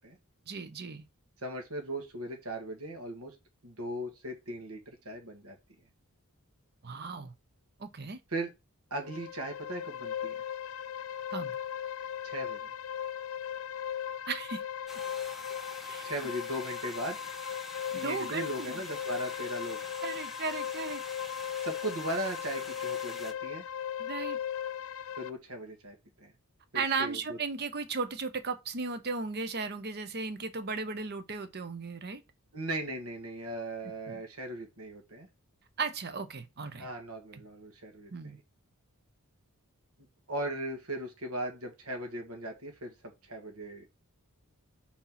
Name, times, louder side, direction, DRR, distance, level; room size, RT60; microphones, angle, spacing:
voice 1, 0.5-1.1 6.8-7.3 7.8-8.2 11.3-11.5 14.3-14.6 15.8-16.1 17.9-18.8 20.0-21.0 24.0-24.4 26.7-32.2 34.1-34.2 35.8-36.9 37.3-37.4 38.1-38.4, right 4 dB, 45° right, 0.8 m, -36 dB
voice 2, 1.4-3.4 3.6-5.6 8.3-8.5 8.9-10.4 12.2-12.7 16.0-17.2 17.9-19.8 21.6-23.6 25.2-26.3 26.7-27.4 32.5-35.3 36.8-38.4 40.3-42.9 43.3-43.9, right 1 dB, 75° right, 1.9 m, -38 dB
sound 1, 9.0-25.3, left 9 dB, 60° left, 0.4 m, -38 dB
sound 2, 14.9-23.3, equal, ahead, 0.5 m, -47 dB
4.4 x 4.3 x 5.7 m
head